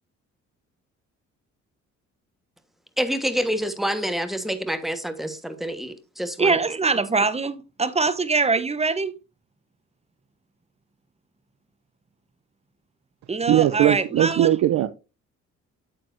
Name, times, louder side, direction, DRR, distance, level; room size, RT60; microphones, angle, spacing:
voice 1, 3.0-6.6, equal, ahead, 1.3 m, -27 dB
voice 2, 6.4-9.1 13.3-14.5, right 4 dB, 20° right, 0.9 m, -23 dB
voice 3, 13.5-14.9, right 12 dB, 70° right, 0.6 m, -19 dB
9.0 x 7.6 x 2.6 m
cardioid pair, 90°, 30 cm